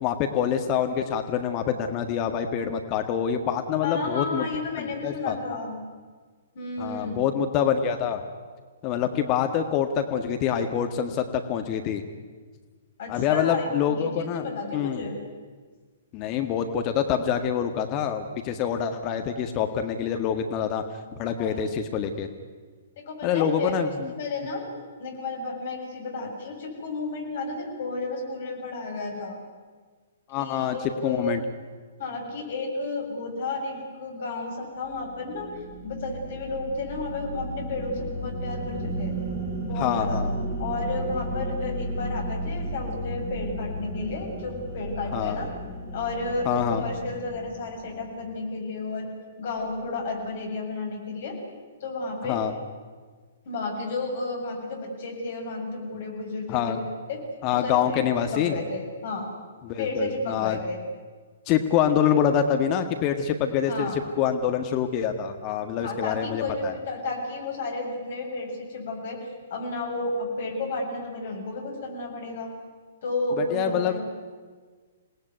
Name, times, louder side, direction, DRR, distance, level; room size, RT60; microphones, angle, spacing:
voice 1, 0.0-4.5 4.8-5.4 6.8-8.2 8.8-12.0 13.1-14.5 14.7-15.0 16.1-20.8 21.1-22.3 23.2-24.1 30.3-30.8 31.0-31.4 39.8-40.3 45.1-45.4 46.5-46.8 52.2-52.5 56.5-56.8 57.4-58.6 59.6-60.6 61.5-66.7 73.4-74.0, left 8 dB, 30° left, 6 dB, 1.8 m, -26 dB
voice 2, 3.8-5.8 6.5-7.2 13.0-15.2 21.4-21.6 23.0-23.7 24.2-24.7 25.0-29.4 30.3-31.4 32.0-39.1 39.6-40.2 40.6-45.5 45.9-49.1 49.4-51.4 51.8-52.4 53.5-57.2 57.5-58.0 58.3-59.3 59.8-60.8 63.7-64.0 65.8-72.5 73.0-74.0, left 3 dB, 50° left, 1 dB, 7.1 m, -32 dB
sound 1, 34.8-48.4, right 1 dB, 20° right, 7.4 m, -34 dB
27.5 x 19.0 x 9.5 m, 1.5 s
figure-of-eight pair, 120°, 0 cm